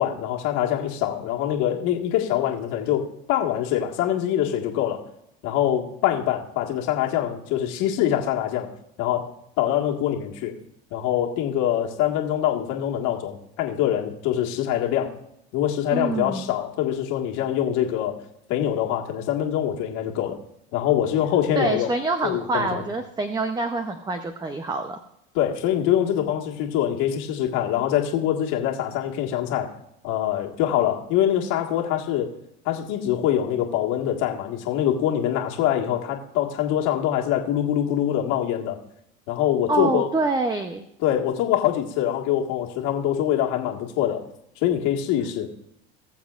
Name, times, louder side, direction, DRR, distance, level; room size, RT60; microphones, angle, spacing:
voice 1, 0.0-5.0 5.4-8.7 9.0-9.3 9.6-10.5 10.9-15.1 15.5-18.2 18.5-20.4 20.7-21.9 22.2-22.8 25.4-29.7 30.0-32.3 32.7-38.8 39.3-40.1 41.0-44.3 44.6-45.5, left 11 dB, 65° left, 0 dB, 1.8 m, -24 dB
voice 2, 15.9-16.5 21.5-25.0 39.7-40.8, right 3 dB, 15° right, 7 dB, 0.7 m, -26 dB
20.0 x 7.2 x 2.5 m, 0.79 s
supercardioid pair, 100°, 32 cm